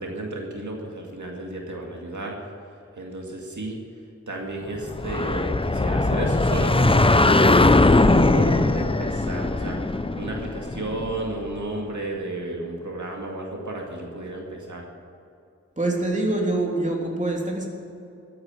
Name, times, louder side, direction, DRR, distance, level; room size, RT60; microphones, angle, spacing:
voice 1, 0.0-2.4 3.0-3.8 4.3-7.6 8.0-9.8 10.2-14.8, right 2 dB, 80° right, 0 dB, 2.2 m, -32 dB
sound 1, 4.9-11.5, left 2 dB, 20° left, 0.5 m, -20 dB
voice 2, 15.8-17.7, right 2 dB, 25° right, -1 dB, 3.2 m, -25 dB
14.0 x 9.4 x 8.9 m, 2.6 s
wide cardioid pair, 60°, 29 cm